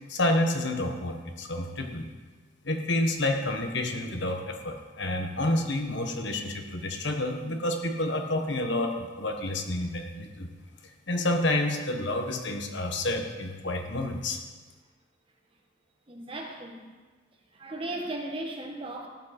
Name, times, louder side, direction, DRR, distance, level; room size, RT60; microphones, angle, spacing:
voice 1, 0.1-2.0 2.6-10.5 11.1-14.4, left 1 dB, 65° left, 4 dB, 1.3 m, -29 dB
voice 2, 16.1-16.8 17.5-19.1, right 1 dB, 25° right, 1 dB, 1.6 m, -36 dB
15.0 x 10.5 x 4.4 m, 1.4 s
head